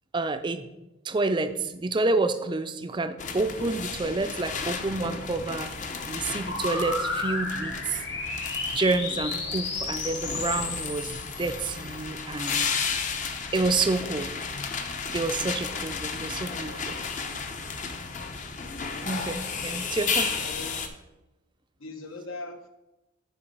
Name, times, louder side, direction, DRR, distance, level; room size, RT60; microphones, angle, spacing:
voice 1, 0.1-0.7 1.0-5.7 6.0-8.0 8.7-13.1 13.5-14.3 15.1-17.0 19.1-20.3, right 3 dB, 20° right, 9 dB, 0.4 m, -29 dB
sound 1, 3.2-20.9, left 5 dB, 35° left, 0.6 m, -33 dB
sound 2, 6.5-12.0, left 3 dB, 55° left, 1.4 m, -33 dB
voice 2, 19.9-20.9 21.8-22.7, left 3 dB, 80° left, 5 dB, 0.9 m, -41 dB
7.0 x 5.0 x 5.2 m, 0.97 s
head